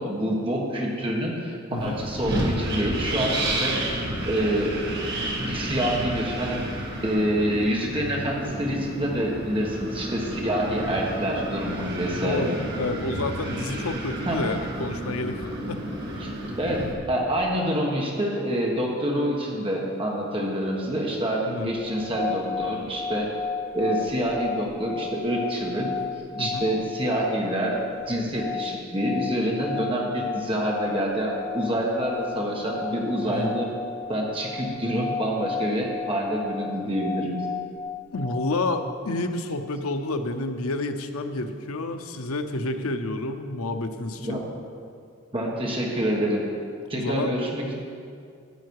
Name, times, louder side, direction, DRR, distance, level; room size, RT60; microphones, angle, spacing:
voice 1, 0.0-4.8 5.4-6.6 7.0-12.6 14.3-14.4 16.2-16.3 16.6-23.3 23.7-25.9 26.3-27.8 28.1-33.7 34.1-37.4 44.2-44.4 45.3-46.4 46.9-47.7, equal, 25° right, -2 dB, 1.4 m, -27 dB
Wind, 1.8-16.9, right 1 dB, 50° right, 1.9 m, -31 dB
voice 2, 12.8-15.8 21.4-21.8 26.4-26.6 33.3-33.5 38.1-44.4 46.9-47.3, left 2 dB, 85° left, 7 dB, 0.7 m, -29 dB
sound 1, 21.9-39.0, left 5 dB, 10° left, 0.6 m, -34 dB
12.5 x 8.2 x 4.8 m, 2.3 s
head